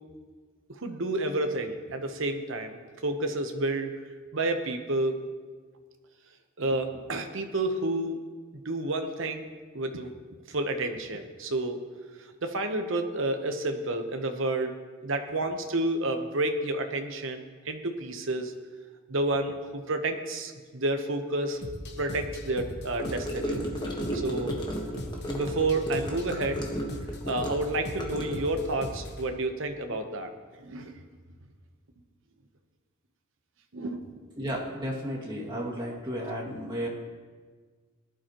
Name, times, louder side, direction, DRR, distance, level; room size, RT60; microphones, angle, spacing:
voice 1, 0.7-3.9 4.3-5.2 6.6-8.2 8.6-9.5 9.7-10.1 10.5-11.8 12.4-14.7 15.0-18.5 19.1-21.6 22.0-23.7 24.1-24.6 25.3-26.7 27.3-30.3 30.6-31.0 33.7-34.0, right 2 dB, 60° right, 6 dB, 1.0 m, -30 dB
sound 1, 21.6-29.3, equal, 50° left, 1.2 m, -40 dB
Gurgling / Car passing by / Sink (filling or washing), 23.0-28.7, equal, 20° left, 1.4 m, -34 dB
voice 2, 34.4-36.9, equal, 20° right, -5 dB, 2.3 m, -33 dB
18.5 x 11.5 x 3.0 m, 1.5 s
head